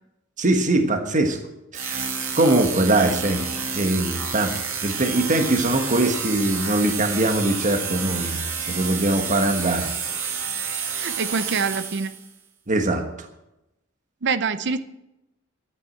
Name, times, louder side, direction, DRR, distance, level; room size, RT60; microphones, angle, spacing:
voice 1, 0.4-1.4 1.7-4.5 4.8-9.9 12.7-13.3, right 2 dB, 40° right, 6 dB, 1.4 m, -22 dB
sound 1, 1.7-12.3, right 6 dB, 85° right, 2.2 m, -29 dB
voice 2, 10.9-12.1 14.2-14.8, right 5 dB, 55° right, 12 dB, 0.7 m, -25 dB
12.5 x 9.2 x 7.8 m, 0.90 s
head